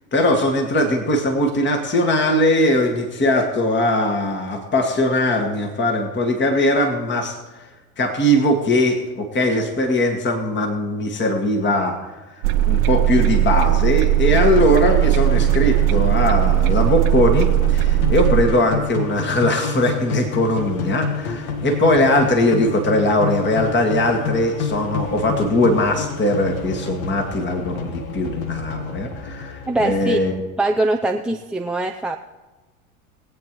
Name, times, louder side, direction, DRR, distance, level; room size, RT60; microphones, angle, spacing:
voice 1, 0.1-7.4 8.0-12.0 12.7-30.4, left 1 dB, 25° left, 4 dB, 1.9 m, -20 dB
sound 1, 12.4-18.4, right 12 dB, 70° right, 0.7 m, -18 dB
sound 2, 14.2-30.3, left 4 dB, 75° left, 1.4 m, -29 dB
voice 2, 29.7-30.2 30.6-32.2, right 2 dB, ahead, 2 dB, 0.3 m, -22 dB
21.5 x 8.5 x 3.1 m, 1.2 s
hypercardioid pair, 85°, 42 cm